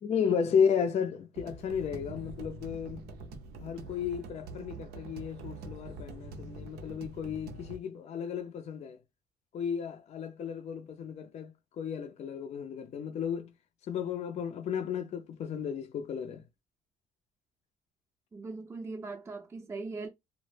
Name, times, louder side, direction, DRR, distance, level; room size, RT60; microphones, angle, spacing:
voice 1, 0.0-3.0 3.6-9.0 9.5-13.5 13.9-16.4, left 7 dB, 40° left, 0.4 m, -33 dB
sound 1, 1.4-7.8, right 2 dB, 80° right, 0.5 m, -44 dB
voice 2, 18.3-20.1, right 3 dB, 15° right, 0.5 m, -39 dB
2.0 x 2.0 x 3.1 m
cardioid pair, 110°, 17 cm